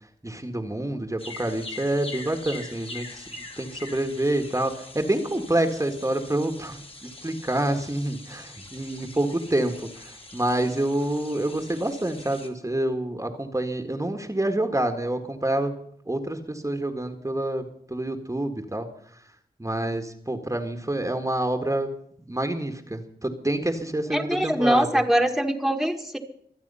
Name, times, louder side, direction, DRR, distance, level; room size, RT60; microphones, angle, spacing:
voice 1, 0.2-15.8 16.1-18.9 19.6-21.9 22.3-25.0, right 1 dB, 20° right, 5 dB, 1.7 m, -27 dB
sound 1, 1.2-12.5, left 2 dB, 35° left, 2.3 m, -43 dB
voice 2, 24.1-26.2, right 1 dB, ahead, 4 dB, 1.8 m, -23 dB
24.5 x 9.0 x 5.6 m, 0.67 s
wide cardioid pair, 75°, 16 cm